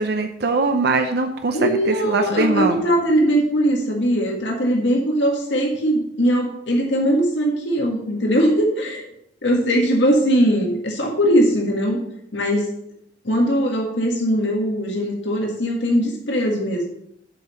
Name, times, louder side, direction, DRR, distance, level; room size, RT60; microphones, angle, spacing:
voice 1, 0.0-2.8, right 3 dB, 60° right, 6 dB, 0.6 m, -21 dB
voice 2, 1.5-9.1 9.4-12.0 12.3-12.7 13.2-16.9, equal, 85° left, 0 dB, 1.9 m, -20 dB
7.6 x 5.6 x 6.5 m, 0.77 s
head